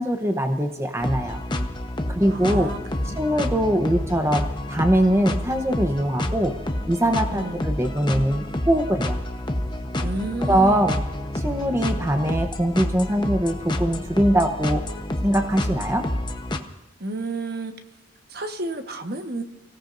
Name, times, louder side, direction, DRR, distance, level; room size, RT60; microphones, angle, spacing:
voice 1, 0.0-1.4 2.1-2.7 3.2-4.4 4.7-6.5 6.9-9.2 10.5-11.0 11.3-14.8 15.2-16.0, right 1 dB, 15° right, 5 dB, 0.9 m, -22 dB
sound 1, 1.0-16.6, left 1 dB, 25° left, 1.0 m, -29 dB
voice 2, 2.3-3.2 7.3-7.6 10.0-10.9 17.0-17.7 18.3-19.4, right 2 dB, 50° right, 6 dB, 1.3 m, -31 dB
29.5 x 17.0 x 2.6 m, 1.1 s
head